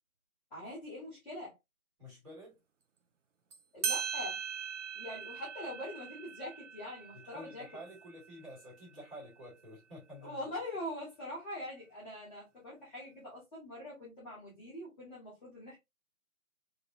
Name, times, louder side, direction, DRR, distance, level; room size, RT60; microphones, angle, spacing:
voice 1, 0.5-1.5 3.7-4.4 4.9-7.6 10.2-15.8, left 1 dB, 5° left, 1.3 m, -43 dB
voice 2, 2.0-2.6 7.1-10.4, equal, 20° right, 2.5 m, -50 dB
sound 1, 3.5-3.6 3.8-8.9, right 7 dB, 60° right, 0.5 m, -40 dB
3.6 x 3.0 x 2.7 m
figure-of-eight pair, 165°, 43 cm